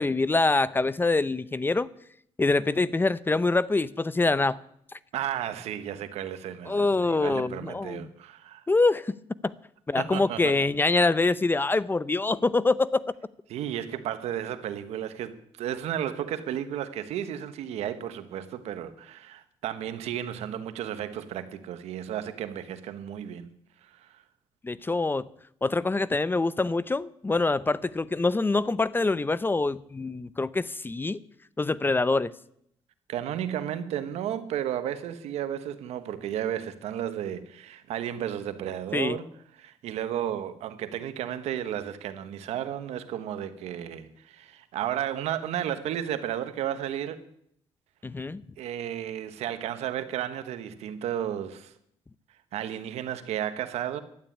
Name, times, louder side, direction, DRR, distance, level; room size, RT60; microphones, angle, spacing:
voice 1, 0.0-1.9 2.4-4.6 6.7-8.1 8.7-9.1 9.4-9.5 9.9-13.0 24.6-25.3 25.6-31.2 31.6-32.3 38.9-39.2 48.0-48.4, left 3 dB, 20° left, 0.6 m, -25 dB
voice 2, 5.1-8.6 10.0-10.5 13.5-23.5 23.8-24.2 33.1-39.3 39.6-47.2 48.6-51.7 52.5-54.0, right 10 dB, 90° right, 1.3 m, -33 dB
12.0 x 9.2 x 10.0 m
cardioid pair, 90°, 11 cm